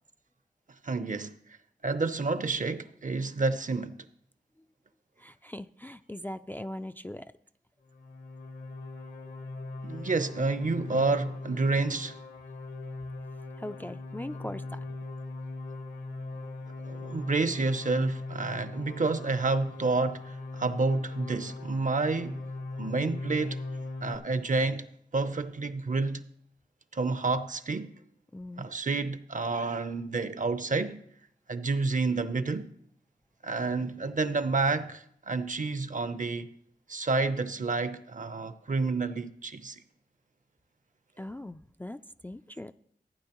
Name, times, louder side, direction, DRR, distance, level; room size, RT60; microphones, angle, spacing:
voice 1, 0.8-1.4 1.8-4.0 9.8-12.2 16.8-22.4 22.8-23.6 24.0-24.9 25.1-26.2 26.9-27.9 28.6-31.0 31.5-32.7 33.4-36.5 36.9-39.8, right 3 dB, 50° right, 0.7 m, -29 dB
voice 2, 5.2-7.3 13.6-14.8 28.3-28.7 41.2-42.7, left 1 dB, 10° left, 0.3 m, -40 dB
sound 1, 7.9-24.2, left 2 dB, 70° left, 1.1 m, -39 dB
15.0 x 9.2 x 3.0 m
cardioid pair, 50°, 17 cm